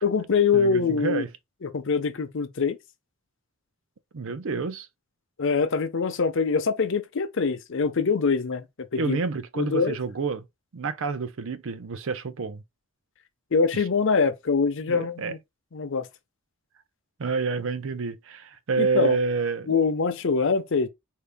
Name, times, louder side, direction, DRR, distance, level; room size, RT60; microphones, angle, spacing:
voice 1, 0.0-1.2 1.6-2.8 5.4-8.6 8.9-9.2 9.6-10.0 13.5-15.4 15.7-16.1 18.8-19.2 19.7-20.9, left 5 dB, 60° left, 0.6 m, -24 dB
voice 2, 0.5-1.3 4.1-4.9 8.9-10.4 10.7-12.6 13.7-13.8 14.9-15.3 17.2-19.7, right 4 dB, 65° right, 0.5 m, -28 dB
4.6 x 2.7 x 3.5 m
head